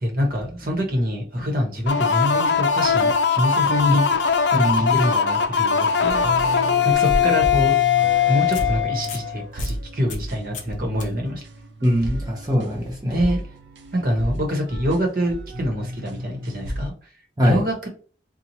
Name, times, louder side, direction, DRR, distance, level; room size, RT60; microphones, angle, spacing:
voice 1, 0.0-6.2 6.9-7.7 8.3-11.4 13.0-13.4 13.9-16.9 17.4-17.9, equal, 50° right, 1 dB, 1.1 m, -25 dB
sound 1, 1.9-9.4, left 7 dB, 65° left, 0.4 m, -20 dB
voice 2, 4.6-5.0 11.8-13.3 17.4-17.6, equal, 20° right, -3 dB, 0.7 m, -22 dB
sound 2, 6.1-16.9, equal, 80° right, 0.6 m, -33 dB
sound 3, 6.4-7.7 8.1-8.2 8.5-8.7 9.0-9.3 9.6-9.7 10.1-10.3 10.5-10.7 11.0-11.1 14.2-14.3, left 1 dB, 40° left, 0.8 m, -33 dB
4.4 x 2.3 x 2.7 m, 0.40 s
head